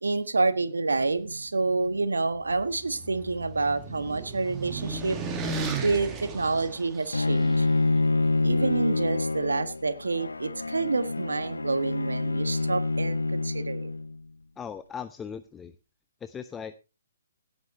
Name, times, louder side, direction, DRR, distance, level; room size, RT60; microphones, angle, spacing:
voice 1, 0.0-5.2 5.8-7.7 8.4-13.9, right 3 dB, 75° right, 12 dB, 1.5 m, -28 dB
sound 1, 2.3-7.5, right 4 dB, 20° right, 2.1 m, -35 dB
Bowed string instrument, 7.1-14.2, left 3 dB, 80° left, 0.6 m, -27 dB
voice 2, 14.6-15.7 16.2-16.8, left 7 dB, 10° left, 11 dB, 0.6 m, -38 dB
17.0 x 8.1 x 4.3 m, 0.30 s
figure-of-eight pair, 130°, 0 cm